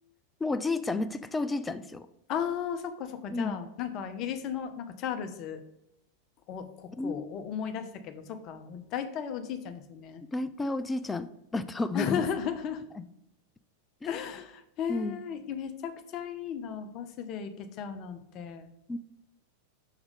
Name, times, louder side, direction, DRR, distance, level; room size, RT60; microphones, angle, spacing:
voice 1, 0.4-2.1 3.3-3.6 7.0-7.4 10.3-12.2 13.0-13.1 14.0-14.2 14.9-15.2 18.9-19.0, left 2 dB, 10° left, 12 dB, 0.3 m, -32 dB
voice 2, 2.3-5.6 6.5-10.2 11.9-12.8 14.1-18.7, left 8 dB, 35° left, 7 dB, 0.7 m, -35 dB
6.4 x 3.5 x 5.1 m, 0.83 s
figure-of-eight pair, 90°, 0 cm